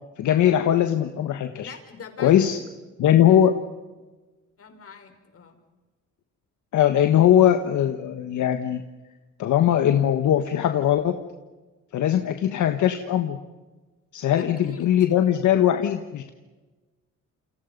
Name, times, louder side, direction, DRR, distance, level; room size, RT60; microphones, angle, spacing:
voice 1, 0.2-1.7 2.2-2.6 3.0-3.6 6.7-8.8 9.4-11.2 11.9-13.4 14.1-16.3, left 10 dB, 75° left, 7 dB, 1.6 m, -20 dB
voice 2, 1.5-2.6 3.1-3.5 4.6-5.5 14.3-14.9, left 5 dB, 50° left, 6 dB, 5.3 m, -44 dB
29.0 x 28.0 x 5.4 m, 1.2 s
cardioid pair, 90°, 30 cm